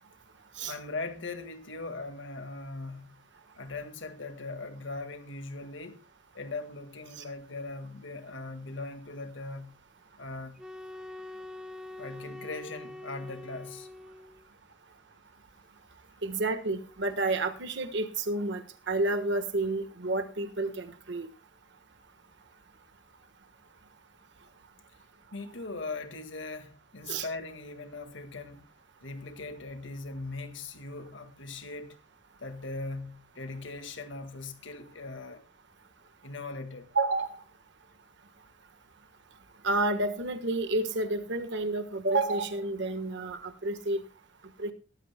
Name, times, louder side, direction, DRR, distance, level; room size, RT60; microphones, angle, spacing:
voice 1, 0.6-3.2 3.6-6.0 6.3-9.8 10.2-10.6 12.0-13.9 25.3-28.7 29.0-32.0 32.4-35.4 36.2-36.9, left 3 dB, 75° left, 1.8 m, -40 dB
sound 1, 10.6-14.5, left 2 dB, 5° right, 0.5 m, -44 dB
voice 2, 16.2-21.3 27.1-27.3 36.9-37.3 39.6-44.0 44.6-44.7, right 2 dB, 65° right, 1.3 m, -30 dB
18.5 x 13.0 x 2.2 m
head